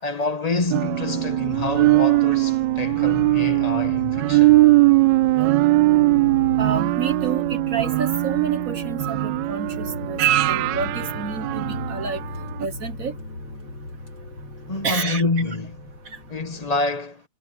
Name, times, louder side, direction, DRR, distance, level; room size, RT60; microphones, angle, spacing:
voice 1, 0.0-4.6 14.7-15.8 16.3-17.2, left 3 dB, 25° left, 1.1 m, -27 dB
sound 1, 0.5-16.8, left 2 dB, 80° left, 5.8 m, -36 dB
sound 2, 0.7-12.2 12.6-12.7, right 19 dB, 75° right, 1.1 m, -20 dB
voice 2, 6.6-10.2 10.5-12.2 12.6-13.1 14.8-15.2 16.1-16.2, right 6 dB, 50° right, 1.3 m, -29 dB
omnidirectional pair, 2.3 m